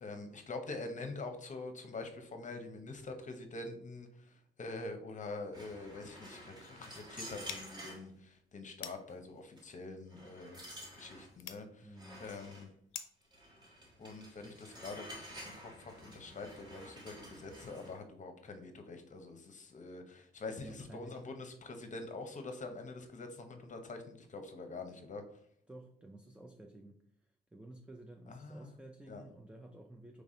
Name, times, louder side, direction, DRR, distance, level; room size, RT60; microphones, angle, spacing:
voice 1, 0.0-11.9 12.2-12.7 14.0-25.2 28.3-28.7 29.1-29.2, left 3 dB, 40° left, 6 dB, 0.8 m, -45 dB
sound 1, 5.5-8.1 8.9-9.1 9.6-9.7 10.1-11.3 12.0-12.7 13.3-18.0, equal, 20° right, 1.4 m, -51 dB
sound 2, 7.4-13.3, left 9 dB, 75° left, 0.6 m, -50 dB
voice 2, 11.8-12.2 20.6-21.2 25.7-27.0 27.5-30.2, right 1 dB, 5° right, 3 dB, 0.5 m, -53 dB
4.0 x 3.3 x 3.7 m, 0.64 s
cardioid pair, 90°, 20 cm